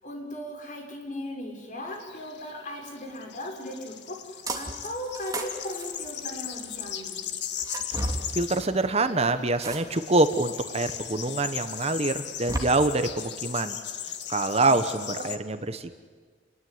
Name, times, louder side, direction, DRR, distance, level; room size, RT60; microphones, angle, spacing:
voice 1, 0.0-7.2 14.6-14.7 15.1-15.3, left 1 dB, 45° left, 2 dB, 6.3 m, -37 dB
sound 1, 1.9-15.4, left 9 dB, 70° left, 1.6 m, -38 dB
sound 2, 4.5-4.9 5.1-6.7 7.5-8.2 9.6-10.2 10.8-10.9 12.1-12.6, right 2 dB, 20° right, 2.7 m, -33 dB
voice 2, 8.3-13.8 14.3-15.9, right 2 dB, 35° right, 10 dB, 1.2 m, -25 dB
29.5 x 21.0 x 9.6 m, 1.5 s
head